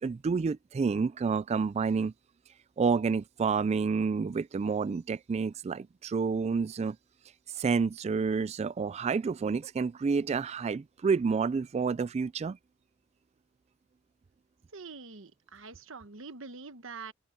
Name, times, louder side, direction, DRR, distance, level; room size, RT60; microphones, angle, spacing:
voice 1, 0.0-2.1 2.8-7.0 7.5-12.6, right 5 dB, 30° right, 0.3 m, -29 dB
voice 2, 14.7-17.1, right 4 dB, 70° right, 1.2 m, -45 dB
open air
head